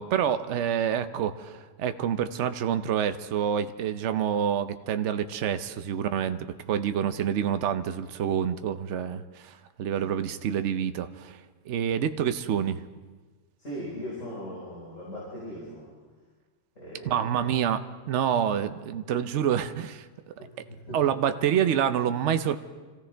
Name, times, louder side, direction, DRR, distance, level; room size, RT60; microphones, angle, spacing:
voice 1, 0.0-6.4 6.7-11.4 11.7-12.8 17.0-17.8 18.1-20.0 20.9-22.6, right 9 dB, 70° right, 10 dB, 1.0 m, -27 dB
voice 2, 13.6-15.9 16.7-17.5 18.5-18.6 20.4-21.0, equal, 75° left, -6 dB, 5.0 m, -39 dB
26.0 x 16.5 x 3.4 m, 1.4 s
omnidirectional pair, 1.3 m